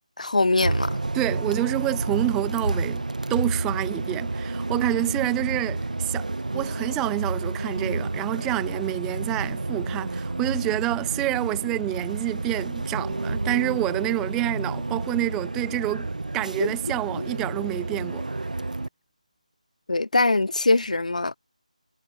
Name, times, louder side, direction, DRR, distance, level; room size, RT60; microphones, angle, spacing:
voice 1, 0.2-1.0 16.6-16.7 19.9-21.4, left 2 dB, 65° left, 1.2 m, -22 dB
Bus, 0.6-18.9, right 2 dB, 75° right, 0.5 m, -30 dB
voice 2, 1.1-3.0 3.3-6.3 6.5-18.2, right 18 dB, 5° right, 0.3 m, -28 dB
figure-of-eight pair, 160°, 4 cm